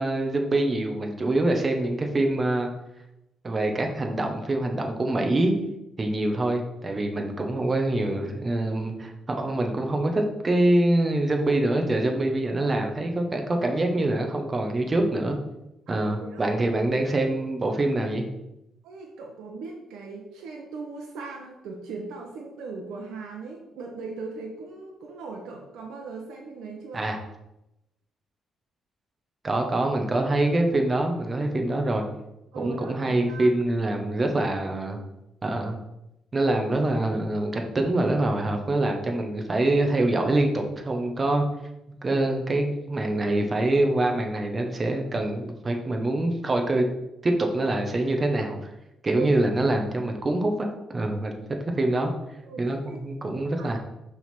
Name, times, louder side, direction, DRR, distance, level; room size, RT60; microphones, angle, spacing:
voice 1, 0.0-2.7 3.4-5.5 6.0-15.4 15.9-18.3 26.9-27.2 29.4-32.1 32.5-35.0 35.4-35.8 36.3-41.4 41.9-46.9 47.2-48.7 49.0-51.4 51.8-52.1 52.6-53.8, right 2 dB, 30° right, 3 dB, 1.1 m, -25 dB
voice 2, 15.9-16.5 18.8-27.1 32.5-33.5 36.5-36.6 49.1-49.3 52.4-53.0 53.6-53.8, right 4 dB, 85° right, 0 dB, 1.0 m, -38 dB
5.8 x 3.7 x 5.9 m, 0.90 s
cardioid pair, 90°, 0 cm